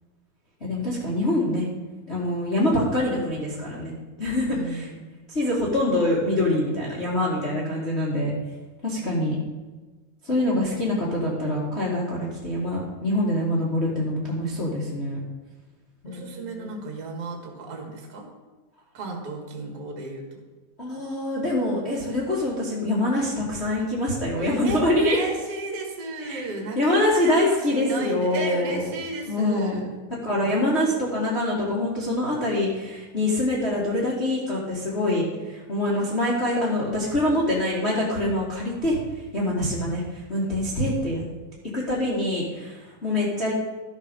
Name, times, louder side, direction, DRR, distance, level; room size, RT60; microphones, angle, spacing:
voice 1, 0.6-1.7 2.1-4.9 5.3-8.3 8.8-9.3 10.2-15.2 16.0-16.7 20.8-25.2 26.2-26.4 26.7-28.9 29.3-29.8 30.2-39.0 39.3-41.2 41.7-43.5, left 1 dB, 35° left, -6 dB, 1.1 m, -25 dB
voice 2, 4.5-5.0 9.0-9.6 16.0-18.2 18.9-20.2 24.4-29.9, right 3 dB, 35° right, 1 dB, 1.5 m, -34 dB
13.0 x 6.3 x 5.2 m, 1.3 s
omnidirectional pair, 3.9 m